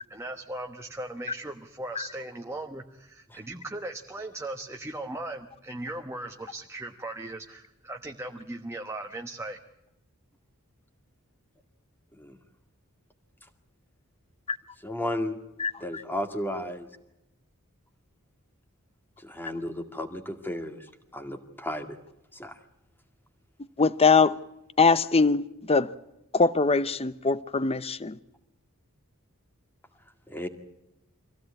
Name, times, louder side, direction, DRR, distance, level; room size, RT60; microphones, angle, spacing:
voice 1, 0.1-9.6, right 2 dB, 10° right, 1.2 m, -38 dB
voice 2, 14.8-15.4 15.8-16.9 19.2-20.8 21.1-22.0 22.3-22.6 30.3-30.5, left 1 dB, 10° left, 2.2 m, -33 dB
voice 3, 15.6-16.0 23.8-24.4 24.8-25.9 26.3-28.2, left 4 dB, 25° left, 0.8 m, -22 dB
25.0 x 16.5 x 8.4 m
head